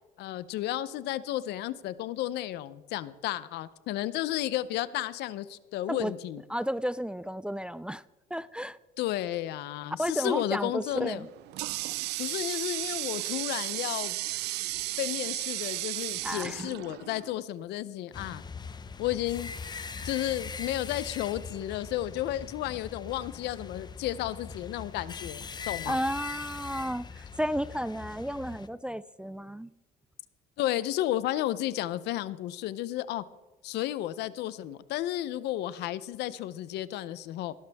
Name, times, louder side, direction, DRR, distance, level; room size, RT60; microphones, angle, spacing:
voice 1, 0.2-6.4 9.0-11.3 12.2-14.2 15.0-18.4 19.0-19.5 20.0-26.0 30.6-33.2 33.6-37.5, left 13 dB, 80° left, 17 dB, 0.7 m, -32 dB
voice 2, 6.5-8.0 8.3-8.8 10.0-11.3 16.2-16.7 25.9-29.7, equal, 5° right, 17 dB, 0.3 m, -32 dB
Water tap faucet, 10.9-17.4, right 19 dB, 80° right, 0.4 m, -34 dB
sound 1, 18.1-28.7, left 5 dB, 25° left, 0.7 m, -41 dB
19.0 x 12.0 x 3.5 m, 1.1 s
cardioid pair, 110°, 17 cm